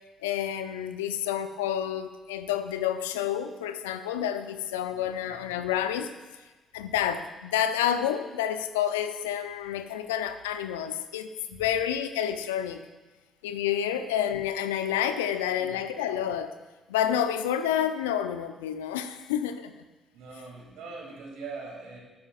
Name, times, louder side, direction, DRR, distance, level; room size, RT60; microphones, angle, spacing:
voice 1, 0.2-6.1 6.7-12.8 13.4-16.5 16.9-19.8, left 10 dB, 80° left, 10 dB, 0.5 m, -29 dB
voice 2, 4.9-5.4 11.5-11.7 13.4-13.5 15.6-15.8 20.1-22.0, right 4 dB, 70° right, -1 dB, 2.7 m, -42 dB
12.5 x 12.5 x 2.5 m, 1.2 s
hypercardioid pair, 45°, 0 cm